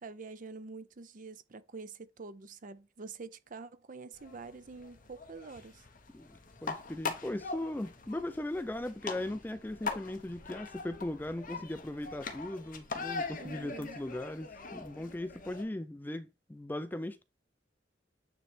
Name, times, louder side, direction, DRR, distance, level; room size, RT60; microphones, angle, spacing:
voice 1, 0.0-5.8 13.4-14.0, right 4 dB, 45° right, 0.6 m, -46 dB
sound 1, 4.1-15.6, left 4 dB, 45° left, 1.1 m, -42 dB
voice 2, 6.1-17.2, left 1 dB, 10° left, 0.4 m, -38 dB
9.2 x 3.2 x 4.3 m
head